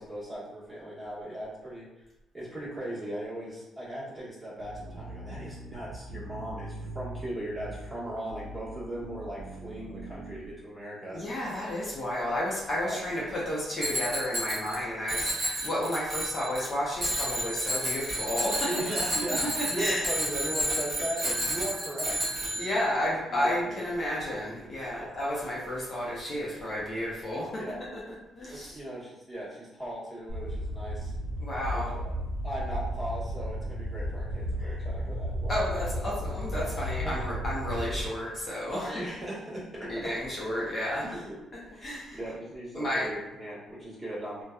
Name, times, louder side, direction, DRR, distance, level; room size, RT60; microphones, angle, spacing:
voice 1, 0.0-1.9 2.3-11.2 12.8-13.0 18.6-22.2 22.9-24.0 25.0-25.2 27.5-27.8 28.5-31.1 31.7-32.1 32.4-35.6 36.5-36.7 37.0-37.2 38.7-39.9 41.0-41.2 41.7-44.4, right 1 dB, 10° right, -9 dB, 1.2 m, -38 dB
sound 1, 4.6-10.6, right 1 dB, 85° right, 0.3 m, -42 dB
voice 2, 11.1-20.0 22.6-27.6 28.1-28.8 31.4-32.0 34.6-34.8 35.5-38.9 39.9-41.0 41.8-42.2 42.7-43.1, left 1 dB, 40° left, -6 dB, 0.7 m, -32 dB
Bicycle bell, 13.8-14.8 15.1-16.7 17.0-22.9, equal, 40° right, 1.1 m, -31 dB
sound 2, 30.3-38.1, equal, 60° right, 0.7 m, -33 dB
2.7 x 2.2 x 2.3 m, 0.95 s
cardioid pair, 90°, 0 cm